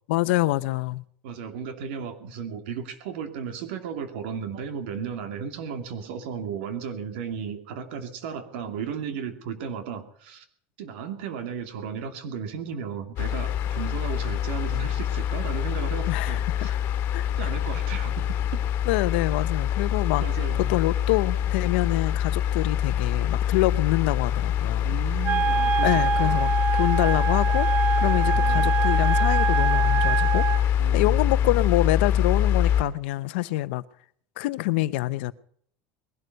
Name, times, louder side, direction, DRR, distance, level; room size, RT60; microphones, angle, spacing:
voice 1, 0.1-1.0 16.1-16.8 17.1-17.5 18.9-20.2 20.7-25.0 25.8-30.5 30.9-33.8 34.4-35.3, left 18 dB, 85° left, 0.8 m, -26 dB
voice 2, 1.2-10.4 10.8-16.7 17.4-18.4 20.2-20.8 24.8-25.9 26.2-26.6 28.3-28.7 30.8-31.2, right 7 dB, 85° right, 2.4 m, -35 dB
sound 1, 13.2-32.8, left 10 dB, 40° left, 2.2 m, -24 dB
Wind instrument woodwind instrument, 25.2-30.6, right 8 dB, 25° right, 1.1 m, -25 dB
21.0 x 12.5 x 5.3 m
cardioid pair, 170°, 6 cm